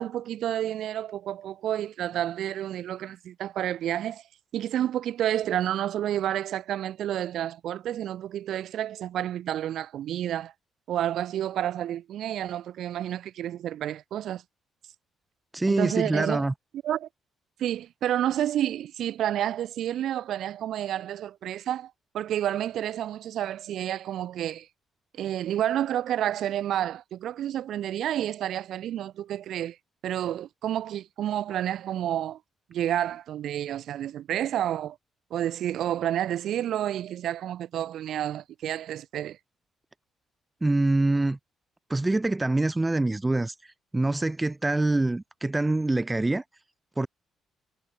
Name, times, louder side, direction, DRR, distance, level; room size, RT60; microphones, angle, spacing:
voice 1, 0.0-4.2 4.5-10.5 10.9-14.4 15.7-16.5 16.8-17.1 17.6-24.7 25.2-29.8 30.0-32.4 32.7-35.0 35.3-39.4, right 11 dB, 75° right, 1.7 m, -30 dB
voice 2, 15.5-16.5 40.6-41.4 41.9-43.5 43.9-46.4 47.0-47.1, right 2 dB, 15° right, 0.7 m, -25 dB
cardioid pair, 90°, 0 cm